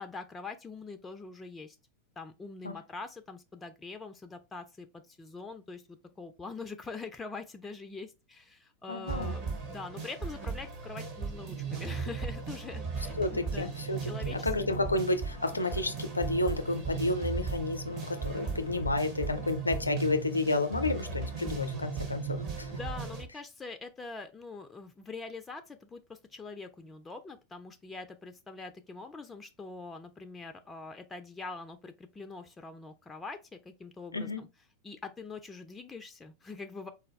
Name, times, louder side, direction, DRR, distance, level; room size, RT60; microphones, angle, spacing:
voice 1, 0.0-1.8 2.2-13.7 14.0-14.5 14.8-14.9 22.7-34.5 34.8-36.9, left 4 dB, 15° left, 0.4 m, -44 dB
voice 2, 8.9-9.3 13.2-14.0 14.3-22.7 34.1-34.4, left 2 dB, 80° left, 0.5 m, -31 dB
sound 1, 9.1-23.2, right 5 dB, 40° right, 1.2 m, -37 dB
4.2 x 2.2 x 3.1 m
figure-of-eight pair, 90°, 0 cm